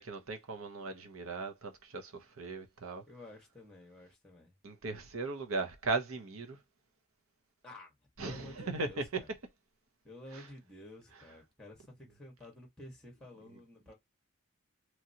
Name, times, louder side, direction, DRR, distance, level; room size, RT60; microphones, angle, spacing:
voice 1, 0.0-3.0 4.6-6.6 8.2-9.0, right 3 dB, 75° right, 0.8 m, -38 dB
voice 2, 3.1-4.5 7.6-9.3 10.0-13.9, left 1 dB, 5° left, 1.2 m, -52 dB
3.1 x 2.8 x 2.7 m
head